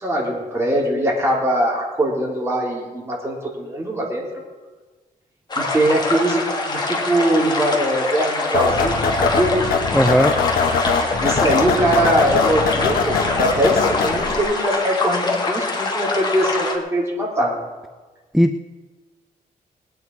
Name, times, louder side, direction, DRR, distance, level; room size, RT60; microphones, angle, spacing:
voice 1, 0.0-4.3 5.6-9.6 11.2-17.5, right 1 dB, 20° right, -3 dB, 3.7 m, -21 dB
sound 1, 5.5-16.8, left 3 dB, 30° left, 1.9 m, -24 dB
sound 2, 8.5-14.4, left 5 dB, 90° left, 1.3 m, -22 dB
voice 2, 9.9-10.4 18.3-18.8, equal, ahead, 9 dB, 0.4 m, -17 dB
20.0 x 9.6 x 4.7 m, 1.3 s
wide cardioid pair, 140°, 15 cm